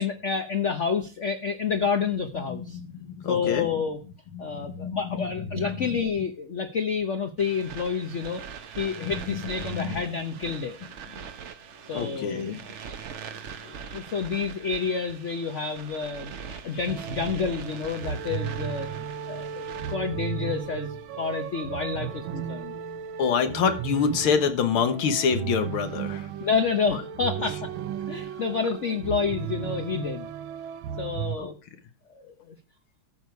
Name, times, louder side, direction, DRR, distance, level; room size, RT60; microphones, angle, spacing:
voice 1, 0.0-2.8 3.3-4.0 4.4-8.4 8.7-10.8 11.9-12.4 13.1-13.3 13.6-16.3 16.6-22.7 26.4-27.7 28.1-30.3 31.0-31.6 32.1-32.6, left 5 dB, 50° left, 7 dB, 0.9 m, -29 dB
voice 2, 2.5-3.7 4.3-6.0 9.0-10.0 11.9-12.6 23.2-26.3 26.9-27.0 31.4-31.5, left 6 dB, 90° left, 8 dB, 2.1 m, -27 dB
sound 1, 7.4-20.0, right 7 dB, 55° right, 0.8 m, -42 dB
sound 2, 16.9-31.4, right 9 dB, 80° right, 1.5 m, -35 dB
14.0 x 6.9 x 4.6 m, 0.34 s
omnidirectional pair, 2.3 m